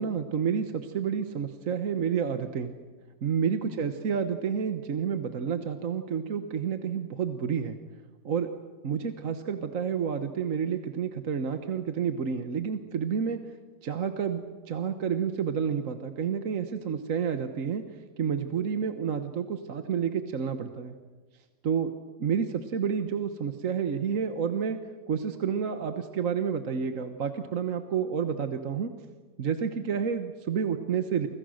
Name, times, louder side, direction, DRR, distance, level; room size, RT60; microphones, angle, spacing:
voice 1, 0.0-2.7 3.2-7.8 8.2-8.5 8.8-13.4 13.8-14.4 14.7-17.8 18.2-20.9 21.6-21.9 22.2-24.8 25.1-28.9 29.4-31.3, right 7 dB, 50° right, 7 dB, 1.4 m, -29 dB
29.0 x 25.5 x 6.5 m, 1.4 s
omnidirectional pair, 1.9 m